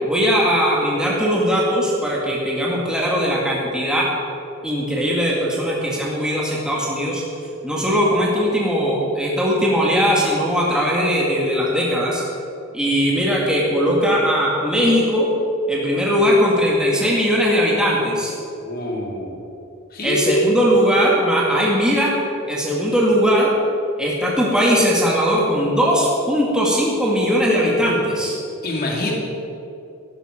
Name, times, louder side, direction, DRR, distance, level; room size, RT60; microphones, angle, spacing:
voice 1, 0.0-4.1 4.6-7.2 7.6-12.2 12.7-15.3 15.7-18.3 20.0-22.1 22.5-23.5 24.0-28.4, equal, 5° right, -5 dB, 2.1 m, -19 dB
voice 2, 18.6-19.3 19.9-20.4 28.6-29.1, left 1 dB, 45° left, -2 dB, 2.9 m, -25 dB
14.5 x 12.5 x 5.1 m, 2.8 s
head